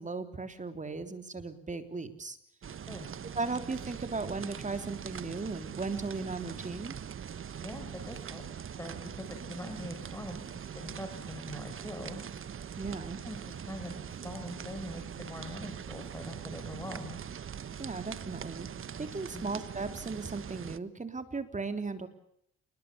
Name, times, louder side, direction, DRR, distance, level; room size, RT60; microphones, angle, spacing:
voice 1, 0.0-2.4 3.3-7.0 12.8-13.2 17.8-18.7 19.0-22.1, right 3 dB, 25° right, 9 dB, 3.6 m, -36 dB
sound 1, 2.6-20.8, right 8 dB, 45° right, 1.2 m, -42 dB
voice 2, 7.6-8.4 8.8-10.5 10.7-12.7 13.0-17.2 19.3-19.4, equal, 10° left, 3 dB, 5.7 m, -43 dB
28.5 x 21.0 x 7.0 m, 0.71 s
cardioid pair, 90°, 30 cm